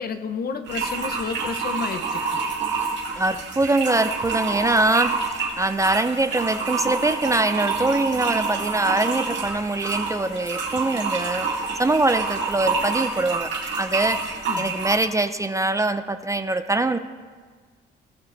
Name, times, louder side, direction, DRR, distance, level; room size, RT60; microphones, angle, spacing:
voice 1, 0.0-2.2 14.5-14.7, left 5 dB, 50° left, 9 dB, 0.8 m, -30 dB
sound 1, 0.7-15.1, right 4 dB, 65° right, 2.6 m, -28 dB
voice 2, 3.2-5.2 5.6-11.5 11.8-13.5 13.8-17.0, right 2 dB, 15° right, 10 dB, 0.5 m, -23 dB
19.0 x 6.7 x 3.3 m, 1.5 s
cardioid pair, 90°, 20 cm